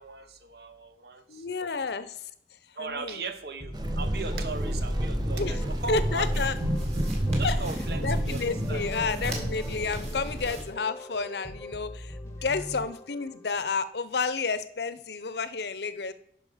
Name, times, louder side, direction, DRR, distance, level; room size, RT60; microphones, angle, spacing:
voice 1, 0.0-1.8 2.8-6.4 7.4-8.9 9.2-9.3 9.8-9.9, right 4 dB, 65° right, 9 dB, 1.0 m, -38 dB
voice 2, 1.3-2.2 2.8-3.2 5.3-5.5 5.9-6.5 7.4-7.5 8.0-16.1, left 4 dB, 70° left, 14 dB, 0.7 m, -31 dB
sound 1, 3.6-13.7, left 1 dB, 15° left, 0.8 m, -43 dB
sound 2, 3.7-10.5, equal, 25° right, 0.7 m, -29 dB
sound 3, 5.4-10.7, right 2 dB, 40° right, 2.2 m, -45 dB
9.9 x 5.9 x 5.0 m, 0.71 s
head